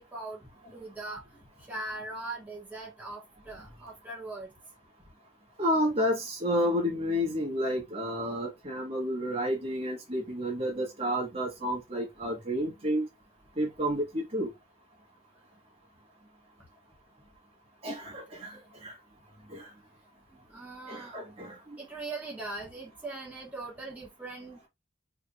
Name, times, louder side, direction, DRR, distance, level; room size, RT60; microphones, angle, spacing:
voice 1, 0.0-1.4 1.7-4.5 20.5-21.2 21.8-24.7, right 2 dB, 10° right, 1.2 m, -40 dB
voice 2, 5.6-13.1 13.6-14.5 17.8-18.9 19.5-19.7 20.9-21.6, equal, 35° right, 1.3 m, -30 dB
3.9 x 3.4 x 2.3 m
head